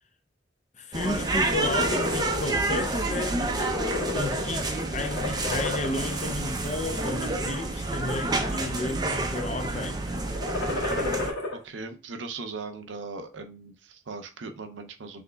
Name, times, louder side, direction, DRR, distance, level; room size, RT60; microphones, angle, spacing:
voice 1, 0.8-3.4 4.1-10.0, left 2 dB, 40° left, 0.6 m, -32 dB
sound 1, 0.9-11.3, right 2 dB, 20° right, 0.5 m, -29 dB
sound 2, 1.5-2.4 2.9-3.1 3.4-4.7 5.0-6.1 6.8-7.2 7.8-8.6 8.9-9.4 10.3-11.5, left 2 dB, 75° left, 1.6 m, -31 dB
voice 2, 11.6-15.2, right 4 dB, 90° right, 0.6 m, -39 dB
5.9 x 3.4 x 2.2 m
head